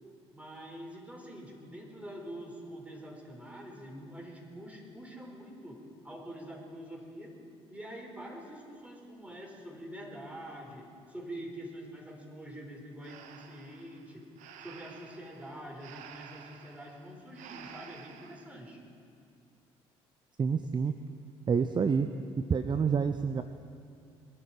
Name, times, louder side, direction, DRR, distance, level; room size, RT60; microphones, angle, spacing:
voice 1, 0.3-7.4 7.7-14.3 14.6-18.8, right 1 dB, 10° right, 0 dB, 4.8 m, -45 dB
Breathing, 13.0-18.6, right 8 dB, 65° right, 1.1 m, -51 dB
voice 2, 20.4-20.9 21.5-22.1 22.5-23.4, right 6 dB, 35° right, 10 dB, 0.7 m, -27 dB
22.0 x 11.5 x 5.0 m, 2.3 s
hypercardioid pair, 55°, 14 cm